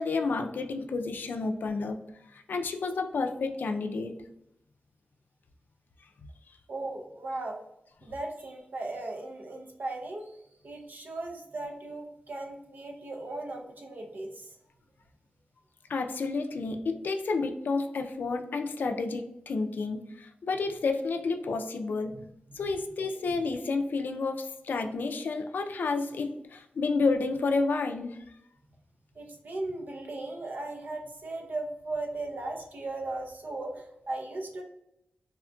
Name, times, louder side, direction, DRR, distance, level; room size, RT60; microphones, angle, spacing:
voice 1, 0.0-2.0 2.3-4.1 15.9-22.1 22.5-28.2, left 3 dB, 75° left, 5 dB, 0.3 m, -30 dB
voice 2, 6.7-7.6 8.0-14.6 22.1-22.2 22.5-22.7 29.1-34.6, right 2 dB, 65° right, 1 dB, 0.6 m, -37 dB
3.5 x 2.5 x 2.2 m, 0.80 s
wide cardioid pair, 85°, 3 cm